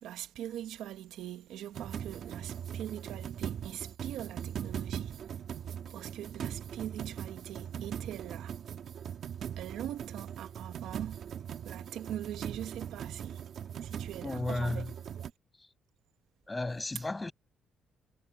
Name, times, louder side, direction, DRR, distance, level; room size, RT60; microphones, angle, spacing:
voice 1, 0.0-5.1 5.9-8.5 9.6-11.2 11.6-13.4 13.8-14.9 15.2-15.3, right 11 dB, 85° right, 1.5 m, -42 dB
sound 1, 1.7-15.3, right 9 dB, 65° right, 2.8 m, -40 dB
voice 2, 14.2-14.9 15.6-15.7 16.5-17.3, left 2 dB, 20° left, 6.5 m, -34 dB
cardioid pair, 90°, 0 cm